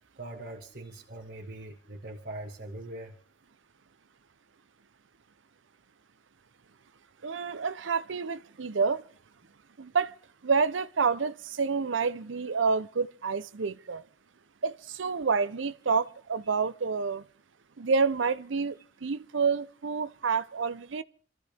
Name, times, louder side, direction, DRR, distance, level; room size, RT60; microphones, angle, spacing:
voice 1, 0.2-3.2, right 1 dB, 50° right, 1.7 m, -42 dB
voice 2, 7.2-9.0 9.8-10.1 10.4-14.0 14.6-17.2 17.8-21.0, right 5 dB, 80° right, 0.7 m, -28 dB
26.5 x 14.0 x 3.5 m
head